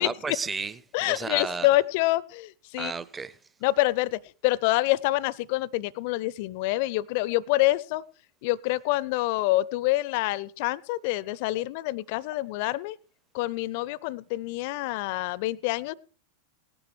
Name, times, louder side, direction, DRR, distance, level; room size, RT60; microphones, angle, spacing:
voice 1, 0.0-1.7 2.8-3.4, right 4 dB, 15° right, 0.6 m, -33 dB
voice 2, 0.9-2.9 3.6-8.0 8.4-13.0 13.3-15.9, left 18 dB, 45° left, 0.5 m, -26 dB
18.0 x 10.5 x 3.3 m
figure-of-eight pair, 90°, 0 cm